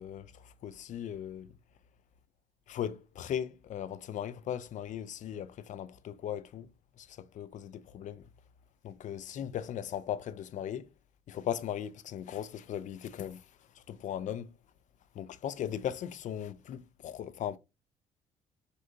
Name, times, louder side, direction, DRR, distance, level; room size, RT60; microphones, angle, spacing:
voice 1, 0.0-1.5 2.7-6.7 7.0-8.3 8.8-10.9 11.3-13.4 13.8-14.5 15.1-17.6, left 10 dB, 45° left, 0.4 m, -38 dB
3.5 x 2.6 x 2.5 m
hypercardioid pair, 50°, 17 cm